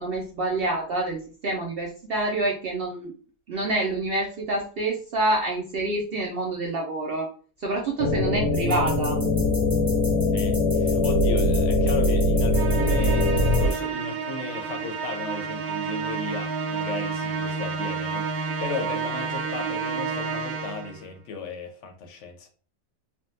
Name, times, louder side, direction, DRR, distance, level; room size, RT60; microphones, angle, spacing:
voice 1, 0.0-3.1 3.5-7.3 7.6-9.2, right 2 dB, 65° right, 0.6 m, -27 dB
sound 1, 8.0-13.7, left 2 dB, 85° left, 1.1 m, -22 dB
sound 2, 8.5-13.8, equal, 20° right, 1.2 m, -38 dB
voice 2, 10.3-22.5, left 4 dB, 65° left, 0.9 m, -35 dB
Musical instrument, 12.5-21.0, right 5 dB, 85° right, 1.0 m, -30 dB
3.5 x 2.2 x 2.6 m
omnidirectional pair, 1.5 m